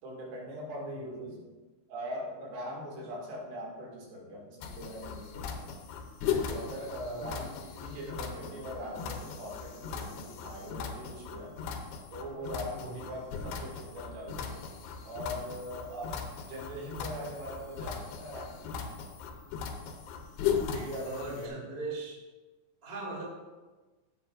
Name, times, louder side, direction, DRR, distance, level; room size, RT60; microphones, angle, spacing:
voice 1, 0.0-1.4 1.9-5.7 6.5-11.6 12.1-14.7 15.0-16.2 16.5-18.7 20.7-21.7, equal, 70° right, -3 dB, 4.2 m, -41 dB
sound 1, 4.6-21.5, left 7 dB, 75° left, 2.6 m, -38 dB
voice 2, 7.0-7.4 12.8-13.0 21.0-22.2 22.8-23.3, right 3 dB, 35° right, -3 dB, 0.9 m, -40 dB
16.5 x 6.9 x 2.5 m, 1.2 s
omnidirectional pair, 5.1 m